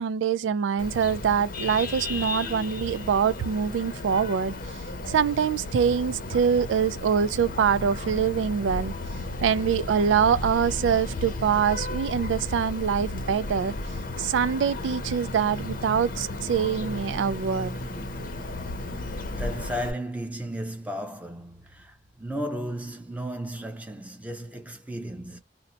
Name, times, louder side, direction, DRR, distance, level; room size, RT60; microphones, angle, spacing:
voice 1, 0.0-4.6 5.1-8.9 9.4-13.7 14.2-17.8, right 7 dB, 85° right, 0.3 m, -24 dB
Vehicle horn car horn honking, 0.8-19.9, left 2 dB, 50° left, 0.7 m, -34 dB
voice 2, 19.3-25.4, equal, 10° right, 0.6 m, -34 dB
2.8 x 2.1 x 3.9 m
head